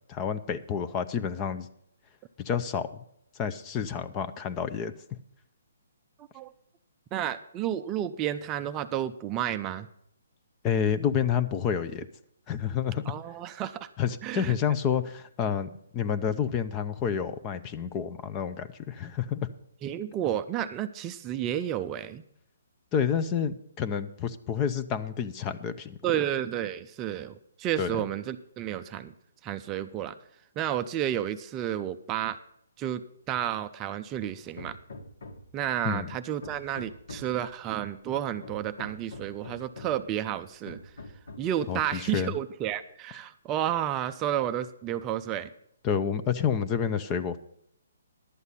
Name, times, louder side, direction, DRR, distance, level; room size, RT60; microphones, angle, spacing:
voice 1, 0.1-1.7 2.4-3.0 3.4-4.9 10.6-12.1 12.5-13.0 14.0-19.5 22.9-26.0 27.8-27.9 35.8-36.1 41.7-42.3 45.8-47.4, left 7 dB, 20° left, 12 dB, 0.6 m, -29 dB
voice 2, 7.1-9.9 13.1-13.9 14.2-14.5 19.8-22.2 26.0-29.1 29.4-30.2 30.6-32.4 32.8-33.0 33.3-34.8 35.5-40.8 41.4-45.5, right 11 dB, 20° right, 9 dB, 0.5 m, -31 dB
Hammer, 34.2-35.6 36.0-37.4 38.1-40.1 40.7-41.6, left 2 dB, 70° left, 1.9 m, -45 dB
11.5 x 8.1 x 5.6 m, 0.71 s
hypercardioid pair, 155°, 0 cm